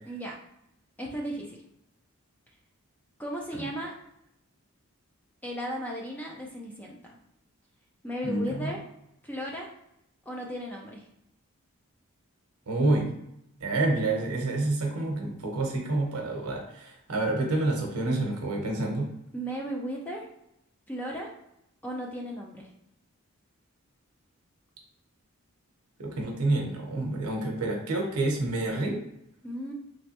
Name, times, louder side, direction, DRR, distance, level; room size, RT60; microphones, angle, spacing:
voice 1, 1.0-1.6 3.2-3.9 5.4-7.0 8.0-8.8 9.2-9.7 10.3-11.0 19.3-20.3 20.9-21.3 21.8-22.7 29.4-29.7, equal, 5° left, -2 dB, 0.5 m, -35 dB
voice 2, 8.2-8.7 12.7-13.2 13.6-19.1 26.0-29.0, right 2 dB, 85° right, 1 dB, 0.9 m, -28 dB
3.3 x 3.0 x 2.9 m, 0.79 s
head